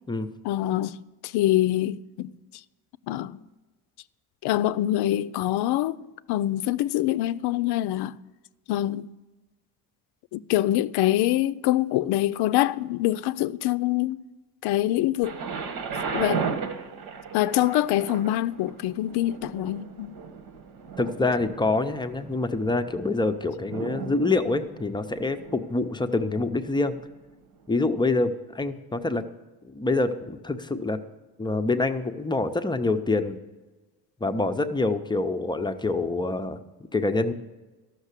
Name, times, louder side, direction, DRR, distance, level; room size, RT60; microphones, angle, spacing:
voice 1, 0.4-1.0 1.2-2.3 3.1-3.4 4.4-6.0 6.3-8.2 8.7-9.1 10.3-14.2 14.6-15.4 16.1-16.4 17.3-20.1, left 14 dB, 90° left, 0.5 m, -25 dB
Thunder, 15.2-27.1 27.8-27.9, right 5 dB, 70° right, 1.5 m, -36 dB
voice 2, 21.0-27.0 27.7-29.2 29.6-31.0 31.4-33.4 34.2-37.3, left 3 dB, 10° left, 0.5 m, -26 dB
13.5 x 6.5 x 8.2 m
cardioid pair, 150°, 38 cm